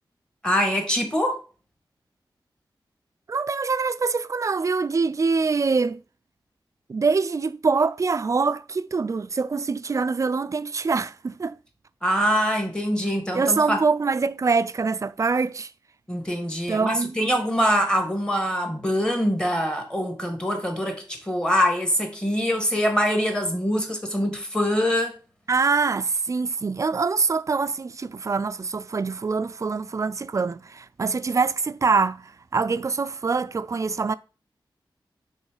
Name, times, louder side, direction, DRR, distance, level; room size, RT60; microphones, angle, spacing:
voice 1, 0.4-1.4 12.0-13.8 16.1-25.1, equal, 10° left, 1.6 m, -24 dB
voice 2, 3.3-6.0 6.9-11.6 13.3-15.7 16.7-17.1 25.5-34.1, right 4 dB, 40° right, 0.3 m, -24 dB
5.2 x 3.7 x 4.9 m
wide cardioid pair, 90°, 8 cm